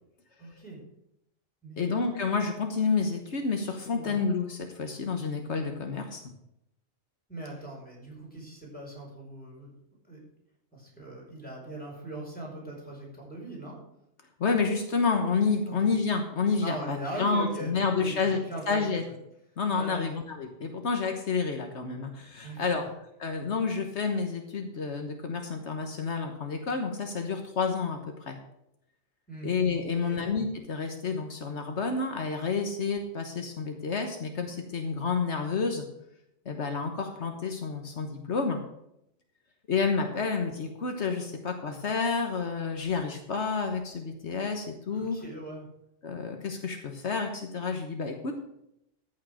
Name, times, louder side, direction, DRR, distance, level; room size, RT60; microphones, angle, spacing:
voice 1, 0.4-0.8 1.6-1.9 3.9-4.2 7.3-9.7 10.1-10.2 10.7-13.8 15.6-15.9 16.6-18.8 19.7-20.1 22.4-22.9 29.3-29.5 29.9-30.2 44.9-45.7, right 1 dB, 5° left, -3 dB, 5.0 m, -40 dB
voice 2, 1.8-6.2 14.4-18.4 18.7-19.0 19.6-22.8 23.2-28.0 28.3-28.4 29.4-35.8 36.4-38.6 39.7-45.2 46.0-48.3, left 5 dB, 75° left, 4 dB, 1.5 m, -29 dB
14.0 x 6.6 x 6.4 m, 0.80 s
omnidirectional pair, 1.2 m